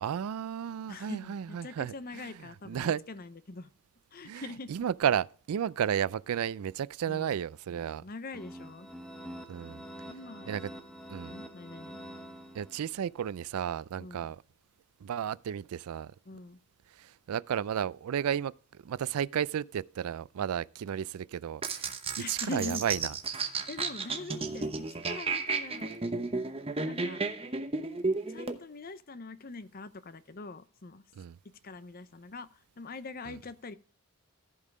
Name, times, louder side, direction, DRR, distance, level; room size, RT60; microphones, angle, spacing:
voice 1, 0.0-3.0 4.2-8.0 9.5-9.8 10.5-10.7 11.1-11.3 12.5-14.4 15.0-16.1 16.9-22.0 22.3-23.1 31.1-31.4 33.3-33.4, right 9 dB, 80° right, 0.3 m, -33 dB
voice 2, 0.9-3.7 4.1-4.7 7.1-7.3 7.7-8.9 10.1-10.6 11.3-12.0 14.0-14.3 16.3-16.6 22.2-22.8 23.7-25.9 26.9-27.2 28.2-31.0 31.6-33.8, left 3 dB, 40° left, 0.7 m, -43 dB
sound 1, 8.3-13.1, equal, ahead, 0.9 m, -46 dB
sound 2, 21.6-28.6, right 4 dB, 25° right, 0.9 m, -33 dB
14.5 x 5.5 x 4.8 m
head